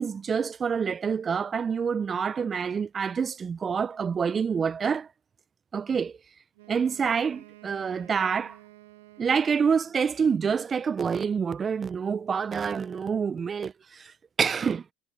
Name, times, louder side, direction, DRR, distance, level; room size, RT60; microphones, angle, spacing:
voice 1, 0.0-5.1 5.7-6.2 6.7-8.6 9.2-14.8, right 6 dB, 30° right, 0.8 m, -27 dB
Wind instrument woodwind instrument, 6.5-10.3, right 19 dB, 75° right, 2.0 m, -52 dB
hypercardioid pair, 75°, 0 cm